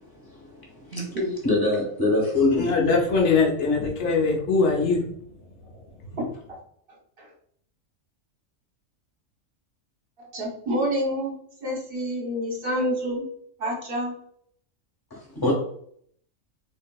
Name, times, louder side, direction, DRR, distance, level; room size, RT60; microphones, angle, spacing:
voice 1, 0.3-0.6 0.9-1.0 1.4-2.8 15.1-15.5, left 2 dB, 20° left, -3 dB, 0.8 m, -23 dB
voice 2, 0.9-1.3 6.1-6.3 7.2-7.3 10.2-11.3 11.6-13.3 13.6-14.1, equal, 45° right, -1 dB, 1.0 m, -28 dB
voice 3, 2.5-5.0, left 4 dB, 65° left, 0 dB, 0.9 m, -21 dB
3.7 x 2.6 x 2.2 m, 0.65 s
omnidirectional pair, 1.4 m